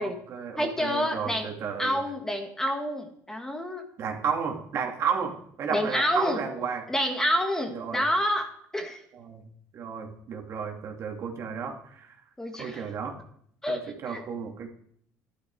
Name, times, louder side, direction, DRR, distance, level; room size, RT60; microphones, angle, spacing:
voice 1, 0.0-1.9 4.0-6.9 7.7-8.0 9.1-9.4 9.7-12.1 12.6-13.2 13.7-14.7, right 6 dB, 50° right, 2 dB, 2.5 m, -33 dB
voice 2, 0.6-1.5 1.8-3.8 5.7-6.4 6.9-9.0 12.4-12.9 13.6-14.2, equal, 10° left, 5 dB, 1.6 m, -28 dB
12.5 x 11.5 x 4.7 m, 0.67 s
cardioid pair, 120°, 6 cm